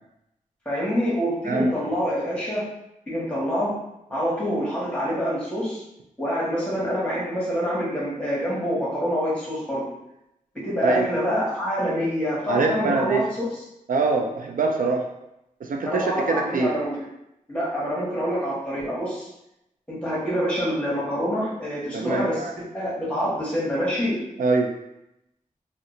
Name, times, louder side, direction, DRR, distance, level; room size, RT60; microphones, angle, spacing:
voice 1, 0.6-2.7 3.1-3.8 4.1-5.8 6.2-9.9 10.6-13.3 15.8-17.0 17.5-19.3 19.9-22.4 22.7-24.2, equal, 10° left, -7 dB, 1.3 m, -26 dB
voice 2, 12.5-13.2 13.9-15.1 15.6-16.7 21.9-22.5 24.4-24.7, right 3 dB, 75° right, 2 dB, 0.4 m, -23 dB
2.8 x 2.2 x 3.8 m, 0.85 s
wide cardioid pair, 110°, 14 cm